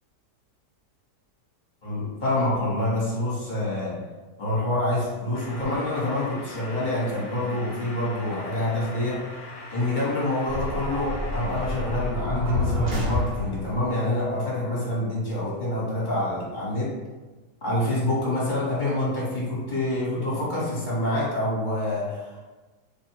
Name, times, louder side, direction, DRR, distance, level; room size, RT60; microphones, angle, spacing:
voice 1, 1.8-4.0 4.4-9.2 9.7-17.0 17.6-22.4, left 1 dB, 30° left, -7 dB, 1.5 m, -27 dB
sound 1, 5.3-12.3, left 2 dB, 50° left, 1.2 m, -42 dB
sound 2, 10.5-13.8, left 1 dB, 90° right, 1.5 m, -28 dB
3.4 x 2.6 x 4.6 m, 1.2 s
omnidirectional pair, 1.8 m